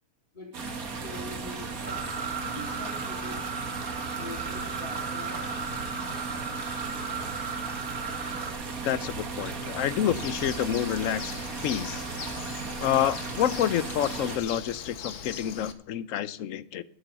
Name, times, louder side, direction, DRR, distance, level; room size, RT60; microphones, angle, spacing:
voice 1, 0.3-3.4 4.1-5.7, left 2 dB, 30° left, -5 dB, 4.3 m, -44 dB
sound 1, 0.5-14.4, right 4 dB, 65° right, 2.0 m, -36 dB
sound 2, 1.8-8.5, right 5 dB, 15° right, 1.6 m, -36 dB
voice 2, 8.8-11.3 11.6-12.0 12.8-16.8, left 10 dB, 65° left, 16 dB, 0.9 m, -28 dB
Bird, 10.1-15.7, left 7 dB, 80° left, 1.5 m, -41 dB
12.0 x 8.0 x 6.7 m, 0.63 s
omnidirectional pair, 1.6 m